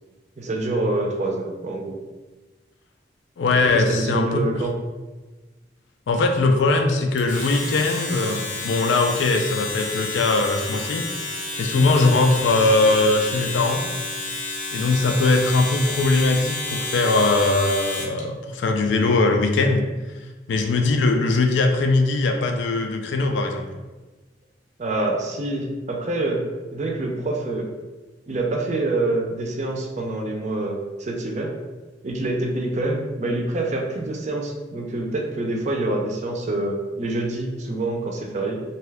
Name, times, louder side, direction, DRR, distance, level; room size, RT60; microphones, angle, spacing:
voice 1, 0.4-2.0 3.6-4.7 11.7-11.9 24.8-26.4 26.7-27.7 28.3-31.6 32.0-38.6, right 2 dB, 40° right, 1 dB, 0.4 m, -26 dB
voice 2, 3.4-4.4 6.1-11.2 11.6-13.9 14.7-19.9 20.5-23.7, left 3 dB, 80° left, 4 dB, 0.4 m, -20 dB
Domestic sounds home sounds, 7.2-18.2, left 2 dB, 45° left, 0.6 m, -30 dB
2.7 x 2.3 x 3.3 m, 1.2 s
head